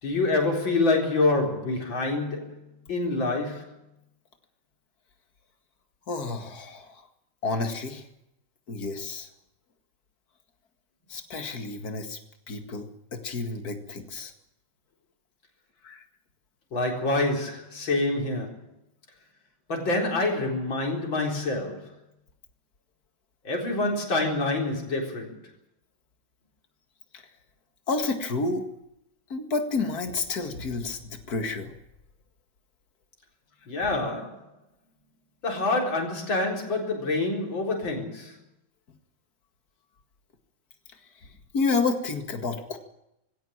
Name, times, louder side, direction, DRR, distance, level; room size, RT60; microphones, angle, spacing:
voice 1, 0.0-3.8 16.7-18.6 19.7-21.9 23.4-25.4 33.7-34.5 35.4-38.4, left 2 dB, 80° left, 4.9 m, -27 dB
voice 2, 6.1-7.0 7.4-8.0 8.7-9.3 11.1-12.2 12.5-14.3 15.8-16.0 27.9-28.7 29.3-31.7 41.5-42.8, left 3 dB, 50° left, 2.5 m, -30 dB
20.5 x 16.5 x 9.0 m
omnidirectional pair, 2.1 m